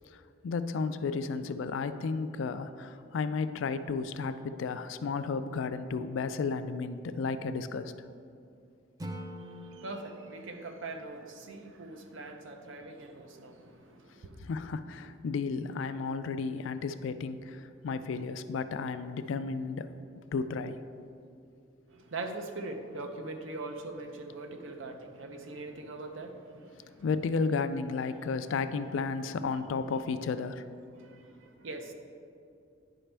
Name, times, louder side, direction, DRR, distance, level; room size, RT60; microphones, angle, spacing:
voice 1, 0.1-7.9 14.4-19.9 20.3-20.8 27.0-30.6, left 4 dB, 70° left, 11 dB, 0.3 m, -33 dB
Acoustic guitar / Strum, 9.0-12.1, equal, 20° right, 0.4 m, -46 dB
voice 2, 9.2-14.4 21.9-27.1 30.9-31.9, right 2 dB, 75° right, 5 dB, 0.7 m, -42 dB
9.8 x 5.1 x 3.3 m, 2.5 s
head